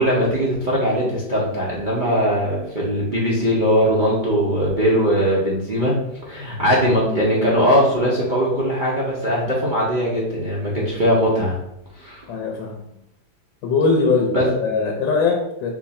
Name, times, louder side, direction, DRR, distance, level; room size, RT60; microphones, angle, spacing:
voice 1, 0.0-5.9 6.3-11.6 12.0-12.3 14.3-14.5, equal, 50° right, -6 dB, 0.5 m, -20 dB
voice 2, 12.3-12.7 13.6-15.7, left 4 dB, 80° left, 1 dB, 1.4 m, -21 dB
4.7 x 2.5 x 4.1 m, 0.81 s
omnidirectional pair, 2.1 m